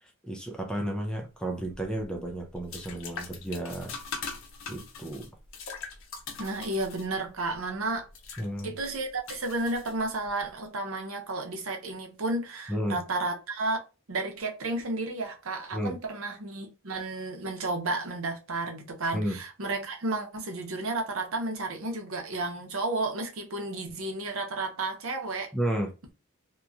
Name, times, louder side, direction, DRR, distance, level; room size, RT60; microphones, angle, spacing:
voice 1, 0.0-3.9 4.6-5.3 8.4-8.7 12.7-13.0 15.7-16.0 19.1-19.4 25.5-25.9, right 1 dB, 5° left, 0.4 m, -32 dB
sound 1, 1.5-10.4, left 5 dB, 65° left, 0.6 m, -42 dB
voice 2, 6.4-8.1 8.6-13.8 14.1-25.5, right 2 dB, 70° right, 0.8 m, -32 dB
2.9 x 2.2 x 2.4 m
head